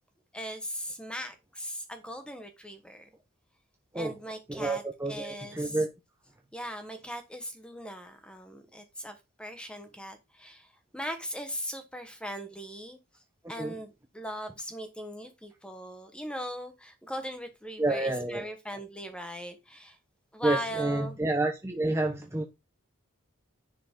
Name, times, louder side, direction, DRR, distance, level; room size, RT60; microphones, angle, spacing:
voice 1, 0.3-3.1 3.9-4.8 5.1-5.8 6.5-13.0 13.5-20.0 20.3-21.2, equal, 5° left, 1.3 m, -39 dB
voice 2, 4.5-5.9 13.6-13.8 17.8-18.4 20.4-22.4, right 2 dB, 15° right, 0.8 m, -29 dB
10.0 x 4.9 x 3.7 m
head